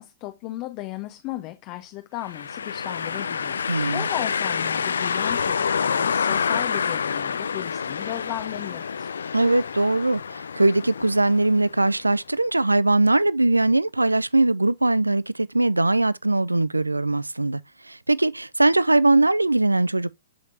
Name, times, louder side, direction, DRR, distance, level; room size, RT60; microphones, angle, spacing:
voice 1, 0.0-9.1, left 16 dB, 35° left, 0.7 m, -35 dB
sound 1, 2.2-12.0, left 6 dB, 65° left, 0.3 m, -27 dB
voice 2, 3.7-4.0 9.3-17.6 17.9-20.1, right 2 dB, 85° right, 0.3 m, -21 dB
7.1 x 5.0 x 2.6 m
figure-of-eight pair, 115°, 0 cm